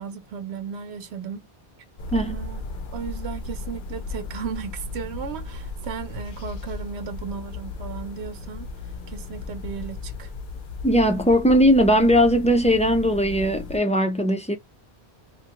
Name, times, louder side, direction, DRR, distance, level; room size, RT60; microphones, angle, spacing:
voice 1, 0.0-1.5 2.1-2.6 2.9-8.7 9.1-10.3, right 7 dB, 85° right, 0.9 m, -35 dB
sound 1, 2.0-13.8, left 3 dB, 60° left, 0.7 m, -35 dB
voice 2, 10.8-14.6, equal, 10° left, 0.3 m, -19 dB
3.0 x 2.2 x 2.9 m
omnidirectional pair, 1.1 m